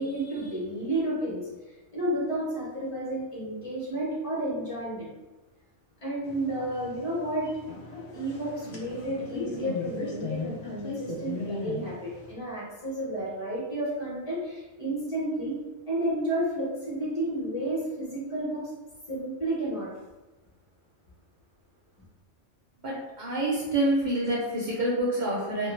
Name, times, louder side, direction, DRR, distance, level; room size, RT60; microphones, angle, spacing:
voice 1, 0.0-5.1 6.0-7.5 8.1-15.6 15.9-18.7 19.1-19.9, right 1 dB, 30° left, -6 dB, 0.7 m, -31 dB
sound 1, 6.2-12.3, left 3 dB, 80° left, 0.3 m, -38 dB
voice 2, 22.8-25.7, right 1 dB, 55° right, -5 dB, 0.5 m, -27 dB
2.2 x 2.1 x 3.0 m, 1.1 s
omnidirectional pair, 1.2 m